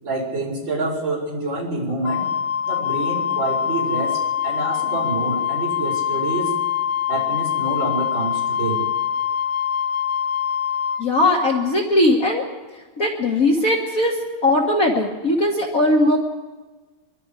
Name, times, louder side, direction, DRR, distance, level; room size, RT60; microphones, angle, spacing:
voice 1, 0.0-2.2 2.7-6.5 7.1-8.8, right 2 dB, 60° right, -3 dB, 5.3 m, -27 dB
Wind instrument woodwind instrument, 2.0-11.0, left 8 dB, 70° left, 1.9 m, -24 dB
voice 2, 11.0-12.5 13.0-14.2 14.4-16.2, left 1 dB, 45° left, 0 dB, 1.9 m, -19 dB
24.5 x 22.0 x 4.9 m, 1.3 s
omnidirectional pair, 2.3 m